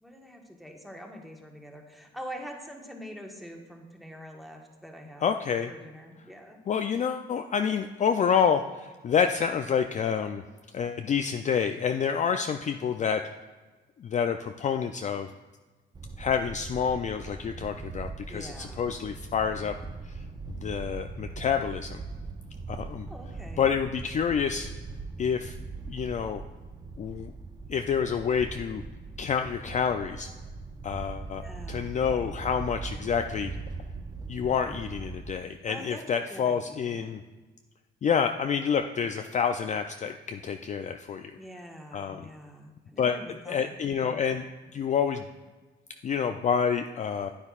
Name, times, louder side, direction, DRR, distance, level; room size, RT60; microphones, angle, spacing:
voice 1, 0.0-6.6 18.3-18.9 23.1-23.8 31.4-32.0 35.7-37.1 41.4-44.2, equal, ahead, 1 dB, 1.3 m, -45 dB
voice 2, 5.2-5.7 6.7-10.4 10.7-13.2 14.0-15.3 16.2-19.8 20.1-20.2 20.6-22.0 22.7-23.1 23.6-24.7 25.2-25.6 25.9-26.4 27.0-27.3 27.7-28.8 29.2-30.3 30.8-33.5 34.3-37.2 38.0-41.4 41.9-42.2 43.0-44.5 44.7-45.2 46.0-47.3, left 7 dB, 40° left, 7 dB, 0.4 m, -28 dB
sound 1, 15.9-35.3, right 4 dB, 20° right, 0.5 m, -40 dB
9.6 x 9.0 x 2.4 m, 1.3 s
cardioid pair, 90°, 20 cm